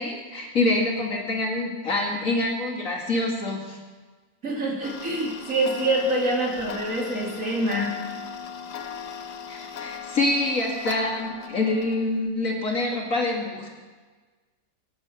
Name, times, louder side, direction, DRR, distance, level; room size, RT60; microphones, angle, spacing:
voice 1, 0.0-3.8 9.5-13.7, left 2 dB, 55° left, -1 dB, 2.8 m, -26 dB
voice 2, 4.4-7.9, right 1 dB, 55° right, -2 dB, 3.4 m, -25 dB
Tick-tock, 4.8-12.0, left 7 dB, 80° left, 1.6 m, -38 dB
23.5 x 8.8 x 5.9 m, 1.4 s
omnidirectional pair, 1.7 m